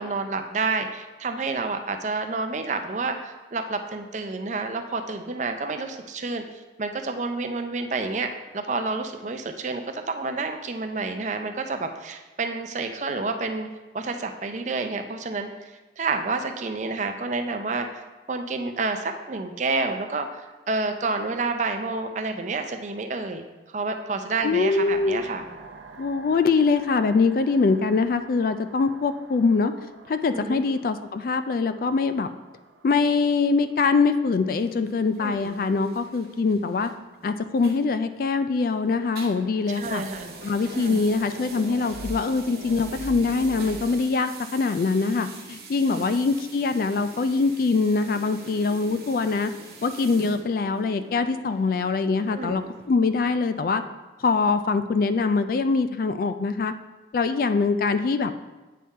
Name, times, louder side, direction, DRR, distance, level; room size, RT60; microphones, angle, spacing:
voice 1, 0.0-6.4 6.8-13.7 13.9-18.0 18.3-23.5 23.7-25.5 30.3-30.6 35.2-35.4 39.8-40.3 40.7-41.0 45.9-46.1 52.3-52.6, right 3 dB, 40° right, 6 dB, 0.5 m, -29 dB
voice 2, 24.4-25.2 26.0-29.7 30.1-32.3 32.8-36.9 37.2-40.0 40.4-49.5 49.8-53.8 54.2-56.7 57.1-58.3, left 4 dB, 50° left, 10 dB, 0.3 m, -23 dB
sound 1, 24.8-35.7 38.9-44.0, right 2 dB, 85° right, 0.6 m, -44 dB
sound 2, 34.5-38.7 39.0-52.9, right 4 dB, 55° right, 0.9 m, -45 dB
8.4 x 3.6 x 4.2 m, 1.2 s
head